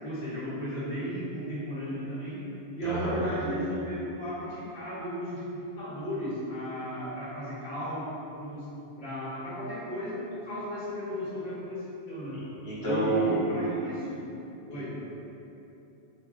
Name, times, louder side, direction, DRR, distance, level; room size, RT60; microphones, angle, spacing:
voice 1, 0.0-2.4 2.7-8.1 8.4-8.7 9.0-12.4 12.8-14.3 14.7-14.9, right 1 dB, 55° left, -11 dB, 1.1 m, -34 dB
voice 2, 2.8-3.2 12.6-13.3 14.7-14.9, equal, 75° left, -11 dB, 1.2 m, -30 dB
4.2 x 2.2 x 2.4 m, 2.9 s
omnidirectional pair, 1.1 m